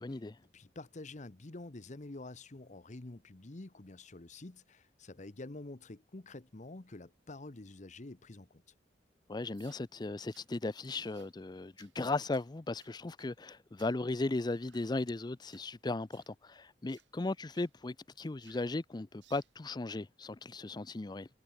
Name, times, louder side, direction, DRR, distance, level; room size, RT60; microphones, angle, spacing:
voice 1, 0.0-0.4 9.3-21.3, left 2 dB, 25° left, 0.5 m, -37 dB
voice 2, 0.5-8.6, left 2 dB, 40° left, 1.0 m, -48 dB
sound 1, 9.5-9.9 10.3-10.5 10.9-11.3 11.8-12.0 12.3-12.5 12.8-13.4 13.8-14.0 14.5-14.9 15.4-15.7 16.1-16.3 16.9-17.1 17.5-17.7 18.4-18.7 19.2-19.5, right 11 dB, 85° right, 2.2 m, -65 dB
head